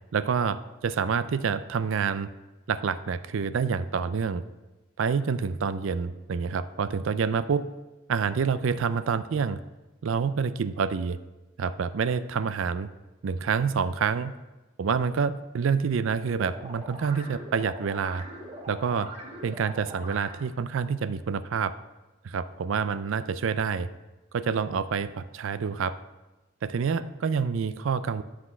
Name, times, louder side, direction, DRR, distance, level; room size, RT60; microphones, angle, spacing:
voice 1, 0.1-2.3 2.7-4.4 5.0-7.7 8.1-9.6 10.0-11.2 11.6-12.9 13.2-14.3 14.8-18.2 18.7-19.1 19.4-21.7 22.2-23.9 24.3-26.0 26.6-28.2, right 6 dB, 75° right, 14 dB, 0.4 m, -27 dB
sound 1, 16.2-20.6, right 1 dB, 35° right, 2.3 m, -42 dB
9.9 x 5.9 x 5.8 m, 1.1 s
head